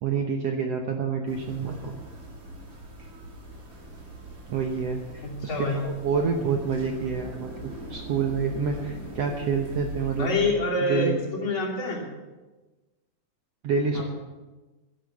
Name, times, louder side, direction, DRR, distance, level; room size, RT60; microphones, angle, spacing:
voice 1, 0.0-1.9 4.5-10.3 10.9-11.2 13.6-14.1, right 5 dB, 90° right, 3 dB, 1.4 m, -28 dB
sound 1, 1.3-10.4, right 1 dB, 40° right, 3.5 m, -41 dB
voice 2, 5.2-5.9 10.2-12.1 13.9-14.1, left 2 dB, 35° left, -4 dB, 3.5 m, -27 dB
12.0 x 11.5 x 7.1 m, 1.2 s
omnidirectional pair, 4.3 m